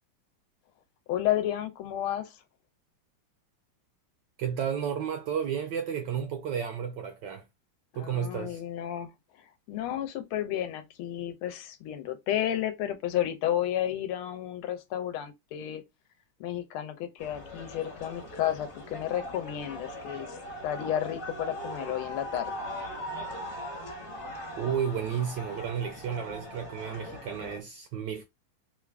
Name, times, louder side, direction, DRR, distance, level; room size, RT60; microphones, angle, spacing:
voice 1, 1.1-2.4 7.9-9.1 9.7-15.8 16.4-20.4 20.6-22.5, left 11 dB, 80° left, 1.5 m, -32 dB
voice 2, 4.4-7.4 7.9-8.6 24.6-28.2, right 8 dB, 75° right, 1.0 m, -32 dB
sound 1, 17.2-27.6, equal, 45° left, 1.4 m, -40 dB
3.7 x 2.5 x 3.3 m
omnidirectional pair, 2.4 m